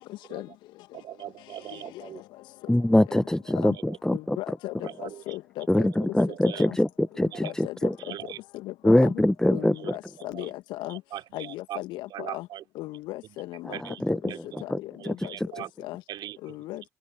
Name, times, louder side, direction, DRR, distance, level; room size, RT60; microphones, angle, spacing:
voice 1, 0.9-2.2 2.8-2.9 3.7-4.0 4.8-5.4 5.9-6.7 7.3-7.5 8.0-8.4 9.6-10.5 10.9-11.8 12.1-12.6 13.2-13.4 13.7-14.0 14.3-14.6 15.0-15.7 16.1-16.6, right 12 dB, 60° right, 3.8 m, -41 dB
voice 2, 2.7-3.7 4.0-4.4 5.7-6.9 7.2-7.9 8.8-9.7 14.0-14.2 14.7-14.8, left 1 dB, 5° left, 1.4 m, -22 dB
voice 3, 4.1-4.7 5.0-5.9 6.7-6.8 7.2-7.7 8.6-9.1 9.5-11.0 11.3-12.5 12.8-13.8 15.1-15.3 15.9-16.0 16.4-16.8, left 18 dB, 70° left, 2.0 m, -36 dB
figure-of-eight pair, 45°, 8 cm